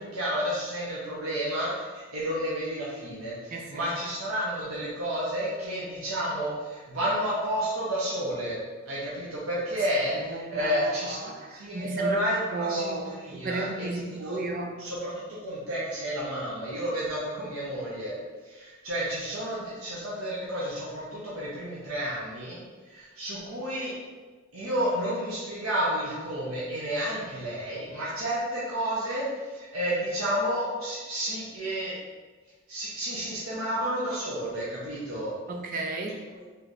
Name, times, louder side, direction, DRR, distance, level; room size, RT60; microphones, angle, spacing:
voice 1, 0.0-8.6 8.9-11.2 11.5-13.9 14.2-14.4 14.8-18.2 18.5-22.6 22.9-23.9 24.5-29.2 29.5-32.0 32.7-35.3 36.3-36.5, equal, 90° right, -7 dB, 0.9 m, -31 dB
voice 2, 3.5-3.9 10.1-12.2 12.5-14.7 17.4-17.5 35.5-36.2, right 3 dB, 40° right, 1 dB, 0.4 m, -34 dB
3.3 x 3.3 x 4.0 m, 1.3 s
head